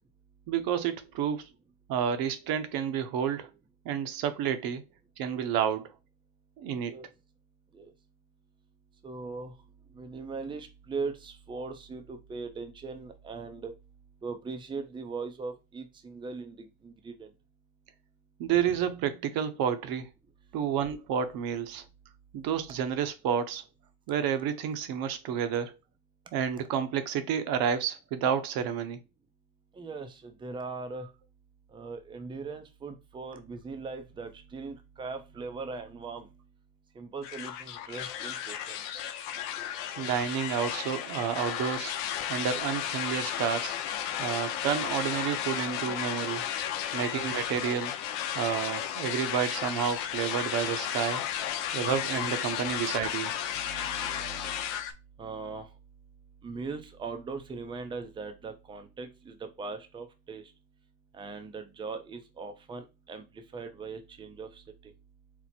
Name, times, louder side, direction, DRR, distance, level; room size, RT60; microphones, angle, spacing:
voice 1, 0.5-1.5 1.9-3.5 3.8-4.8 5.2-5.9 6.6-6.9 18.4-20.1 20.5-21.8 22.3-23.6 24.1-25.7 26.3-29.0 40.0-41.9 42.3-43.7 44.2-46.4 46.9-47.9 48.3-51.2 51.7-53.3, right 8 dB, 50° right, 0.8 m, -30 dB
voice 2, 9.0-9.5 9.9-13.7 14.2-16.6 16.8-17.3 29.7-31.1 31.7-36.3 37.0-38.8 53.5-54.7 55.2-55.7 56.4-60.5 61.1-64.9, right 4 dB, 10° right, 0.5 m, -40 dB
sound 1, 37.2-54.9, left 10 dB, 70° left, 0.8 m, -34 dB
4.5 x 2.1 x 4.1 m
supercardioid pair, 115°, 47 cm